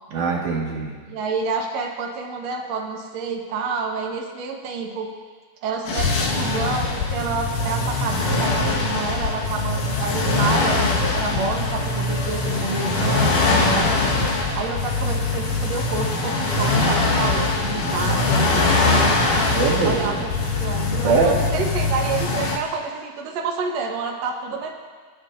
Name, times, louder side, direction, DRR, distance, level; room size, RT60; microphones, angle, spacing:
voice 1, 0.1-0.9 19.5-20.2 21.0-21.3, right 4 dB, 85° right, -2 dB, 3.3 m, -22 dB
voice 2, 1.1-5.1 5.6-13.9 14.5-19.4 19.8-20.3 20.6-24.7, right 4 dB, 65° right, 1 dB, 2.2 m, -29 dB
sound 1, 5.9-22.6, left 3 dB, 85° left, 3.1 m, -22 dB
27.0 x 9.8 x 2.6 m, 1.5 s
omnidirectional pair, 3.5 m